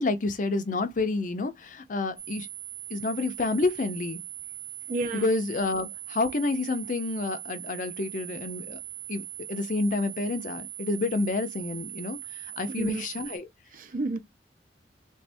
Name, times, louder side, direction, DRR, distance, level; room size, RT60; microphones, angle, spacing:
voice 1, 0.0-2.5 2.9-4.2 5.1-8.8 9.1-13.5, left 3 dB, 45° left, 0.5 m, -29 dB
sound 1, 2.2-13.4, right 11 dB, 30° right, 1.2 m, -40 dB
voice 2, 4.9-5.3 12.7-13.0 13.7-14.2, right 2 dB, 50° right, 0.5 m, -31 dB
3.4 x 2.6 x 3.3 m
head